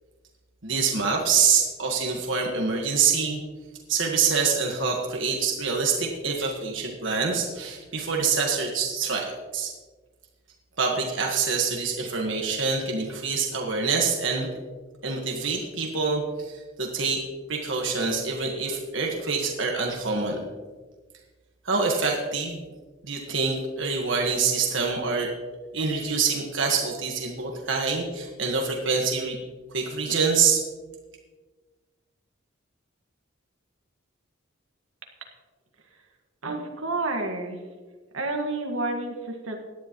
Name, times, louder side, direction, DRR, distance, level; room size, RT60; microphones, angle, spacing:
voice 1, 0.6-3.4 3.9-9.7 10.8-14.5 15.0-20.4 21.6-22.6 23.0-25.3 25.7-29.4 29.7-30.6, right 5 dB, 70° right, 0 dB, 1.6 m, -26 dB
voice 2, 36.4-37.6 38.1-39.6, right 2 dB, 85° right, 2 dB, 1.8 m, -29 dB
17.5 x 11.0 x 3.1 m, 1.4 s
head